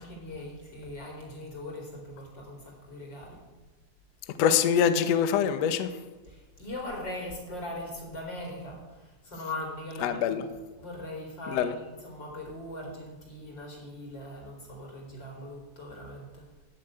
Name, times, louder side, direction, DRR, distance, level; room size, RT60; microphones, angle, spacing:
voice 1, 0.0-3.4 6.3-16.4, left 1 dB, 30° left, 0 dB, 4.3 m, -40 dB
voice 2, 4.4-5.9 10.0-10.4 11.5-11.7, left 8 dB, 75° left, 9 dB, 1.5 m, -24 dB
15.5 x 7.7 x 9.1 m, 1.2 s
omnidirectional pair, 4.3 m